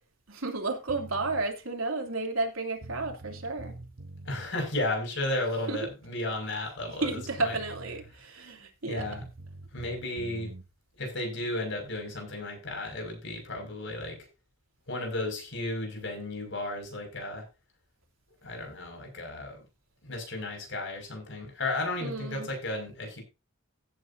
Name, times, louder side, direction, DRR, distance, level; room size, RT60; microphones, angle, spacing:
voice 1, 0.3-3.8 5.7-5.8 6.9-9.1 22.0-22.5, right 3 dB, 80° right, 3.1 m, -32 dB
sound 1, 0.9-1.5 2.5-2.6 2.8-4.5 6.7-6.8 7.0-8.2 9.0-10.7, right 2 dB, 60° right, 1.1 m, -45 dB
voice 2, 4.2-7.1 7.4-7.6 8.9-9.2 9.7-10.5 11.0-14.2 14.9-17.4 18.4-19.6 20.0-23.2, left 2 dB, 60° left, 6.2 m, -34 dB
15.5 x 9.3 x 2.8 m
head